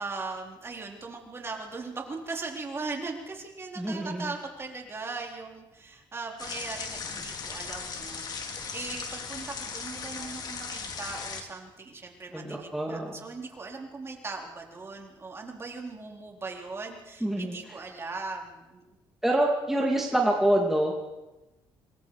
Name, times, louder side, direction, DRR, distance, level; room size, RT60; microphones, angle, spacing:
voice 1, 0.0-18.8, right 3 dB, 30° right, 1 dB, 4.0 m, -39 dB
voice 2, 3.8-4.3 12.3-13.2 17.2-17.5 19.2-21.0, right 1 dB, 5° right, -1 dB, 2.5 m, -26 dB
sound 1, 6.4-11.4, left 5 dB, 50° left, 3.2 m, -37 dB
26.5 x 21.0 x 4.9 m, 1.1 s
cardioid pair, 110°, 9 cm